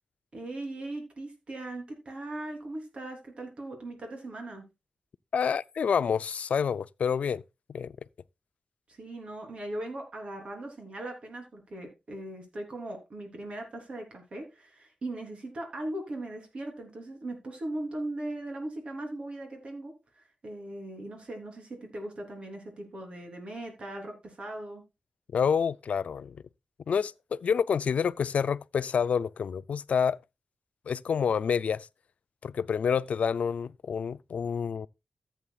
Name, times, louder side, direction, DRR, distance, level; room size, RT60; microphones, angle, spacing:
voice 1, 0.3-4.6 8.9-24.8, right 1 dB, 50° right, 3.5 m, -39 dB
voice 2, 5.3-7.4 7.7-7.9 25.3-26.4 26.9-30.2 30.9-31.9 32.4-34.9, left 7 dB, 65° left, 0.4 m, -28 dB
14.5 x 8.5 x 2.3 m
wide cardioid pair, 145°, 3 cm